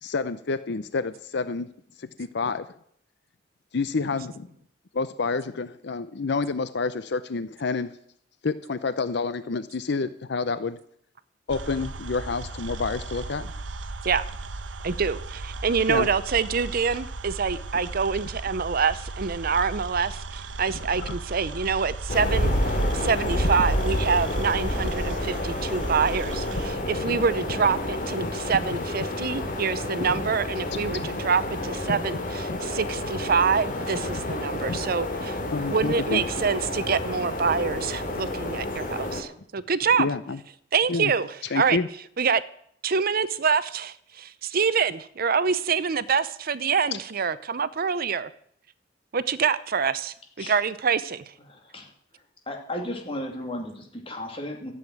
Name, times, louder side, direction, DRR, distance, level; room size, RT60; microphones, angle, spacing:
voice 1, 0.0-1.7 2.0-2.7 3.7-4.5 4.9-7.9 8.4-10.8 11.5-13.5 15.9-16.1 20.9-21.1 26.7-27.2 28.2-28.3 30.1-30.3 30.7-30.9 31.9-32.0 32.5-32.6 34.7-34.8 35.5-36.2 40.0-40.4 40.9-41.1 41.5-41.9, left 4 dB, 65° left, 13 dB, 0.6 m, -29 dB
sound 1, 11.5-26.7, right 3 dB, 90° right, 1.0 m, -36 dB
voice 2, 14.8-35.4 35.7-40.1 40.7-41.8 42.2-42.4 42.8-48.3 49.1-51.2, right 5 dB, 50° right, 16 dB, 0.6 m, -26 dB
sound 2, 22.1-39.2, left 1 dB, 45° left, 2.6 m, -29 dB
voice 3, 51.5-51.9 52.5-54.7, left 1 dB, 30° left, 2 dB, 2.9 m, -34 dB
14.0 x 7.9 x 9.2 m, 0.66 s
head